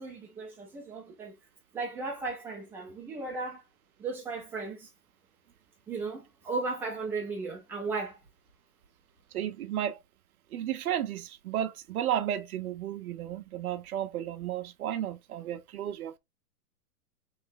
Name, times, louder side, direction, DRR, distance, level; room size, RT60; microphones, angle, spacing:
voice 1, 0.0-1.4 1.7-3.6 4.0-4.9 5.9-8.2, right 3 dB, 5° right, 0.4 m, -36 dB
voice 2, 9.3-10.0 10.5-16.2, right 11 dB, 70° right, 0.7 m, -33 dB
3.2 x 3.2 x 3.7 m
hypercardioid pair, 140°, 46 cm